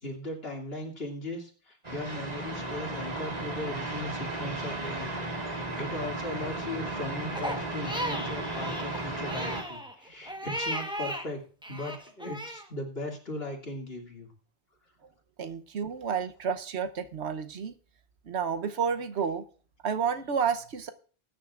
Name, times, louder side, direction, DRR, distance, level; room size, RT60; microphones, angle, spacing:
voice 1, 0.0-11.4 11.7-14.3, left 1 dB, 65° left, 2.8 m, -38 dB
sound 1, 1.8-9.6, right 2 dB, 40° right, 1.9 m, -35 dB
Crying sobbing, 7.3-11.3 11.6-12.6, equal, 5° right, 1.2 m, -36 dB
voice 2, 15.4-17.7 18.3-19.4 19.8-20.9, right 6 dB, 85° right, 1.2 m, -30 dB
20.0 x 9.4 x 2.5 m
omnidirectional pair, 1.1 m